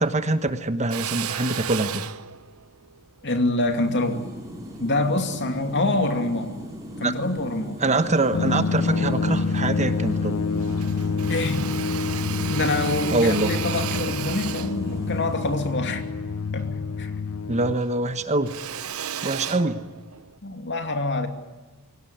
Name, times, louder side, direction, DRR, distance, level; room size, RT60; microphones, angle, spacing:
voice 1, 0.0-2.1 7.0-7.1 7.8-10.4 13.1-13.5 17.5-18.5 19.2-19.8, right 2 dB, 30° right, 10 dB, 1.2 m, -24 dB
Drill, 0.9-5.4 6.0-7.2 7.6-8.6 8.9-9.0 9.3-10.3 10.5-17.2 17.5-20.4, right 9 dB, 70° right, 1.0 m, -35 dB
voice 2, 3.2-4.2 4.8-6.6 7.0-7.8 11.3-11.7 12.5-16.1 16.5-17.1 20.4-21.3, left 2 dB, 55° left, 6 dB, 2.7 m, -26 dB
sound 1, 3.7-15.7, equal, 15° right, 5.9 m, -38 dB
sound 2, 8.3-17.8, left 4 dB, 85° left, 0.7 m, -27 dB
24.0 x 17.5 x 9.4 m, 1.2 s
head